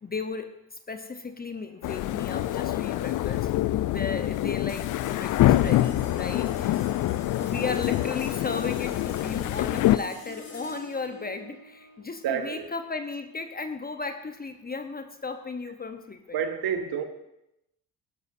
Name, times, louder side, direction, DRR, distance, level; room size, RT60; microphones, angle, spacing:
voice 1, 0.0-3.5 3.8-6.8 7.4-16.4, left 4 dB, 20° left, 8 dB, 0.9 m, -35 dB
sound 1, 1.8-10.0, left 14 dB, 45° left, 0.5 m, -25 dB
sound 2, 4.7-15.3, left 3 dB, 60° left, 4.1 m, -47 dB
voice 2, 12.2-12.7 16.3-17.0, right 8 dB, 50° right, 7 dB, 1.5 m, -29 dB
17.5 x 12.0 x 2.7 m, 0.83 s
hypercardioid pair, 55°, 47 cm